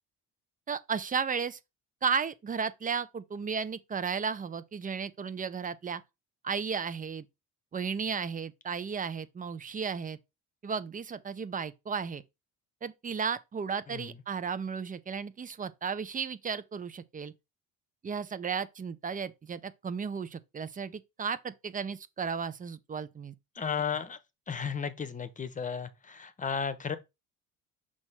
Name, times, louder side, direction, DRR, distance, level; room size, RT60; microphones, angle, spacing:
voice 1, 0.7-1.6 2.0-6.0 6.4-7.3 7.7-10.2 10.6-12.2 12.8-17.3 18.0-23.3, right 6 dB, 25° right, 0.6 m, -34 dB
voice 2, 23.6-24.2 24.5-27.0, left 6 dB, 20° left, 0.9 m, -34 dB
6.3 x 2.9 x 5.6 m
cardioid pair, 115°, 34 cm